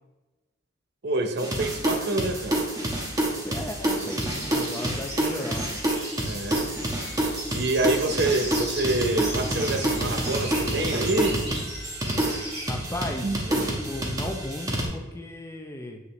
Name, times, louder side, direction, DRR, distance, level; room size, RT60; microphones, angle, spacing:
voice 1, 1.0-2.7 6.2-6.7 7.5-11.4 13.2-13.7, right 2 dB, 55° right, 6 dB, 0.7 m, -27 dB
sound 1, 1.4-14.9, right 1 dB, 15° right, 1.1 m, -28 dB
voice 2, 3.2-5.7 12.7-16.0, left 1 dB, 15° left, 2 dB, 0.5 m, -36 dB
sound 2, 4.0-12.7, right 1 dB, 35° right, 2.1 m, -38 dB
8.0 x 5.1 x 3.1 m, 1.1 s
head